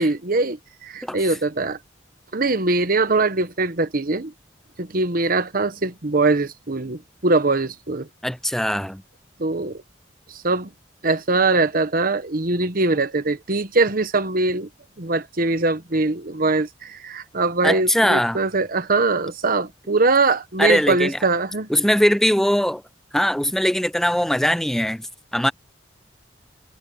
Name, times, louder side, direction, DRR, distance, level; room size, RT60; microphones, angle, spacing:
voice 1, 0.0-1.8 2.3-4.3 4.8-8.1 9.4-9.8 10.3-10.7 11.0-14.7 15.0-21.7, right 3 dB, 50° right, 1.2 m, -22 dB
voice 2, 8.2-9.0 17.6-18.4 20.6-21.2 21.7-22.8 23.1-25.1 25.3-25.5, equal, ahead, 0.5 m, -20 dB
head